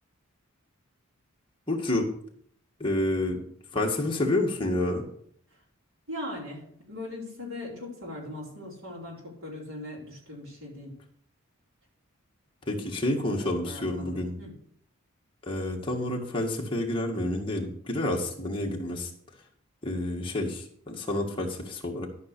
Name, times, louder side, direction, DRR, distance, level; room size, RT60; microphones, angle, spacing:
voice 1, 1.7-2.1 2.8-3.4 3.7-5.1 12.7-14.4 15.4-19.1 19.8-22.1, left 1 dB, 25° left, 0 dB, 1.8 m, -29 dB
voice 2, 6.1-10.9 13.4-14.6, left 1 dB, 70° right, -3 dB, 4.4 m, -40 dB
13.0 x 5.7 x 6.7 m, 0.63 s
head